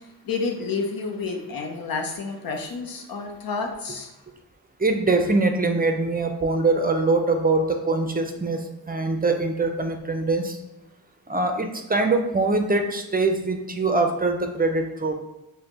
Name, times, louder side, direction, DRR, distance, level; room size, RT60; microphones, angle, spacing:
voice 1, 0.0-4.1, left 4 dB, 80° left, 2 dB, 0.7 m, -30 dB
voice 2, 4.8-10.6 11.3-15.1, right 3 dB, 25° right, 4 dB, 0.5 m, -23 dB
5.0 x 2.2 x 2.9 m, 0.96 s
cardioid pair, 50°, 35 cm